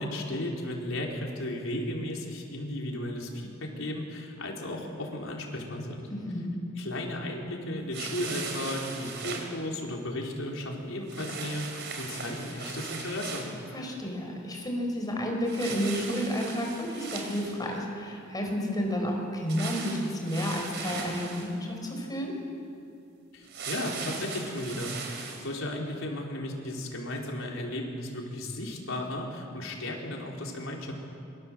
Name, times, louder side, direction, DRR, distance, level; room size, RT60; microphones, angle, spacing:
voice 1, 0.0-6.1 6.8-13.4 23.3-30.9, left 1 dB, 80° left, -1 dB, 4.5 m, -35 dB
voice 2, 6.1-6.5 13.7-22.3, equal, 20° left, 1 dB, 5.2 m, -31 dB
sound 1, 7.9-9.5 11.1-13.6 15.5-17.8 19.5-21.5 23.4-25.5, right 5 dB, 60° right, 4.1 m, -38 dB
27.0 x 24.5 x 7.8 m, 2.5 s
head